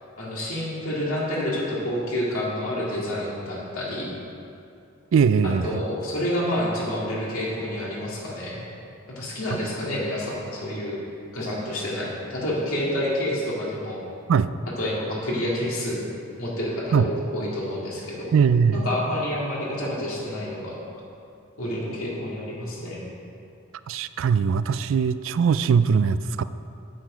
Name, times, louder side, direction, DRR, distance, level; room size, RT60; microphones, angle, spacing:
voice 1, 0.2-4.1 5.4-8.6 9.2-11.0 11.3-14.0 14.8-16.0 16.4-18.3 18.7-20.8 21.6-23.0, left 1 dB, 80° left, -5 dB, 2.1 m, -28 dB
voice 2, 5.1-5.8 14.3-14.5 16.9-17.1 18.3-18.8 23.9-26.4, right 6 dB, 65° right, 14 dB, 0.3 m, -20 dB
8.9 x 7.6 x 4.9 m, 2.6 s
head